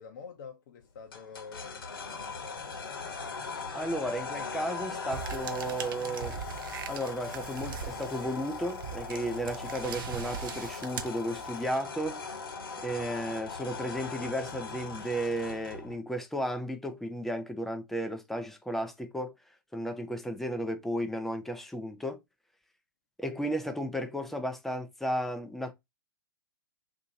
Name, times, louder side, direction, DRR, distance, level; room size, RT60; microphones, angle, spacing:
voice 1, 0.0-3.0, left 5 dB, 50° left, 0.6 m, -47 dB
sound 1, 1.1-16.0, left 5 dB, 70° left, 1.0 m, -40 dB
voice 2, 3.7-6.4 6.9-12.2 12.8-19.3 19.7-22.2 23.2-25.7, equal, ahead, 0.5 m, -34 dB
sound 2, 5.1-11.8, right 9 dB, 60° right, 0.6 m, -41 dB
2.7 x 2.7 x 3.6 m
figure-of-eight pair, 110°, 12 cm